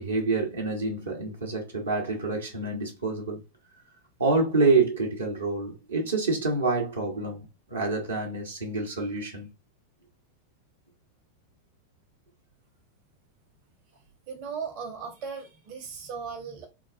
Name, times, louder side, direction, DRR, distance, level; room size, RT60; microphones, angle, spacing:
voice 1, 0.0-3.4 4.2-9.5, right 3 dB, 70° right, 0.9 m, -27 dB
voice 2, 14.3-16.7, right 6 dB, 45° right, 0.8 m, -37 dB
3.9 x 2.3 x 2.4 m
figure-of-eight pair, 90°, 0 cm